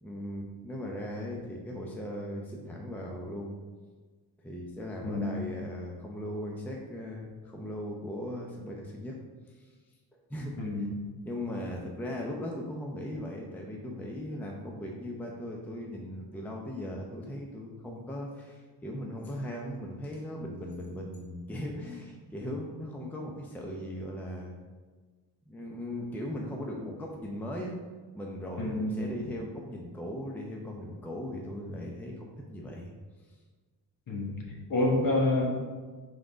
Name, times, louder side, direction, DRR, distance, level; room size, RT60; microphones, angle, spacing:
voice 1, 0.0-3.6 4.4-9.2 9.5-9.7 10.3-10.6 11.2-24.5 25.5-27.8 28.1-32.9, left 1 dB, 5° left, -1 dB, 0.6 m, -38 dB
voice 2, 5.0-5.4 10.6-10.9 28.6-29.3 34.1-35.5, left 2 dB, 50° left, -1 dB, 1.5 m, -29 dB
5.7 x 3.9 x 4.9 m, 1.4 s
cardioid pair, 140°, 43 cm